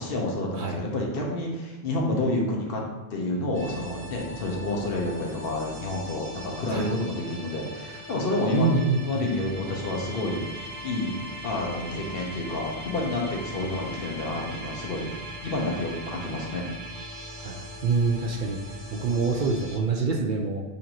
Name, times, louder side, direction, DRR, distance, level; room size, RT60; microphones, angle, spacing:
voice 1, 0.0-2.8 3.1-15.1 15.4-16.7, left 2 dB, 65° left, -1 dB, 1.0 m, -29 dB
sound 1, 3.5-19.8, equal, 40° right, 1.1 m, -40 dB
voice 2, 8.5-9.3 17.4-18.6 18.9-20.6, right 4 dB, 60° right, 1 dB, 0.7 m, -26 dB
6.8 x 2.6 x 2.9 m, 1.2 s
omnidirectional pair, 1.1 m